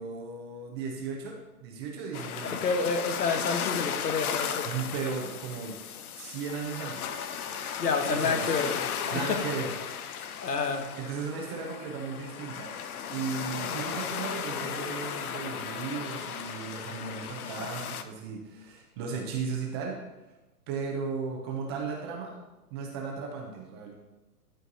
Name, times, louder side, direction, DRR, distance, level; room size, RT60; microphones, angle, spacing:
voice 1, 0.0-2.6 4.6-5.8 6.2-7.2 8.0-8.4 9.1-10.4 11.0-12.7 13.1-20.0 20.7-22.4 22.7-24.0, right 5 dB, 15° right, 0.5 m, -36 dB
sound 1, 2.1-18.0, left 8 dB, 65° left, 0.7 m, -35 dB
voice 2, 2.4-4.8 7.8-9.4 10.4-10.9, left 4 dB, 85° left, 1.2 m, -29 dB
11.0 x 4.5 x 2.7 m
hypercardioid pair, 140°, 47 cm